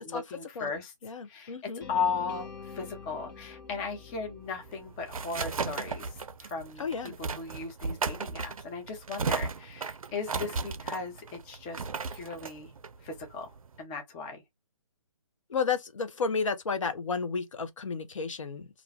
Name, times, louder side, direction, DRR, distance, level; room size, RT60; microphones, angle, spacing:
voice 1, 0.0-0.9 1.3-12.7 13.0-13.5 13.8-14.4, left 5 dB, 15° left, 0.5 m, -37 dB
voice 2, 1.0-1.8 6.8-7.1 15.5-18.7, left 5 dB, 65° left, 0.6 m, -32 dB
sound 1, 1.8-5.9, left 5 dB, 35° left, 0.9 m, -46 dB
sound 2, 4.5-13.8, right 4 dB, 75° right, 0.4 m, -36 dB
2.4 x 2.2 x 3.2 m
figure-of-eight pair, 140°, 18 cm